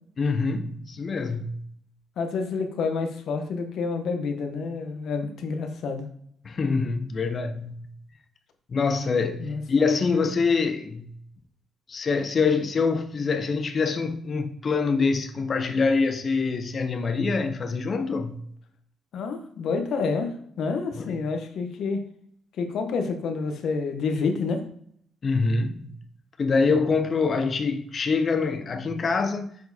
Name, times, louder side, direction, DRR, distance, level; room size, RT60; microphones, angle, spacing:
voice 1, 0.2-1.6 6.4-7.9 8.7-11.1 11.9-18.4 21.0-21.2 25.2-25.9 26.4-29.5, left 4 dB, 45° left, 0.6 m, -25 dB
voice 2, 2.2-6.1 9.4-9.6 19.1-22.0 22.6-24.6 26.6-26.7, left 4 dB, 70° left, 1.1 m, -28 dB
6.6 x 4.7 x 4.1 m
cardioid pair, 90°, 0 cm